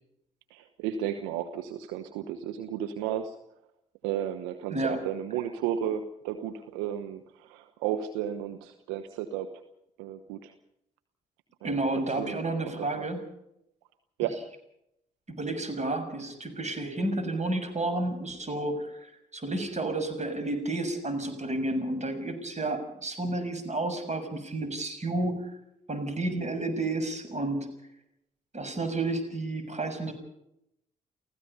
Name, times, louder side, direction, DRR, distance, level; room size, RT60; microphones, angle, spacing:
voice 1, 0.5-3.4 4.0-9.5 10.0-10.5 11.6-11.8 12.2-12.4 12.8-13.1 14.2-14.4, right 10 dB, 75° right, 8 dB, 1.1 m, -33 dB
voice 2, 11.6-13.2 15.3-25.5 25.9-27.7 28.5-30.1, right 2 dB, 35° right, 8 dB, 6.5 m, -31 dB
29.5 x 16.5 x 5.5 m, 0.80 s
figure-of-eight pair, 40°, 20 cm